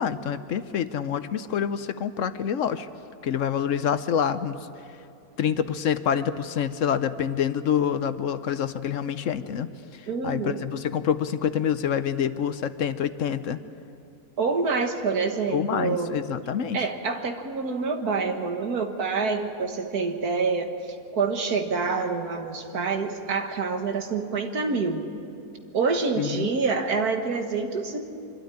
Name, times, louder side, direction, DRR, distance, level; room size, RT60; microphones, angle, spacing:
voice 1, 0.0-2.9 3.2-4.6 5.4-9.7 9.9-13.6 15.5-16.8 26.2-26.5, left 8 dB, 65° left, 12 dB, 1.0 m, -27 dB
voice 2, 10.1-10.7 14.4-16.1 16.7-20.8 21.1-25.1 25.7-28.0, right 4 dB, 90° right, 5 dB, 2.0 m, -27 dB
25.0 x 13.0 x 9.9 m, 2.7 s
omnidirectional pair, 1.6 m